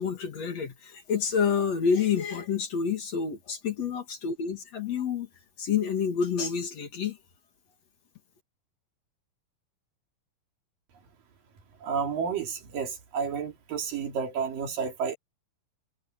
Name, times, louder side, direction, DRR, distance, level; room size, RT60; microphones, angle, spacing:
voice 1, 0.0-5.3 5.6-7.2, left 6 dB, 50° left, 3.0 m, -28 dB
voice 2, 11.8-15.2, right 6 dB, 75° right, 4.7 m, -31 dB
omnidirectional pair, 4.0 m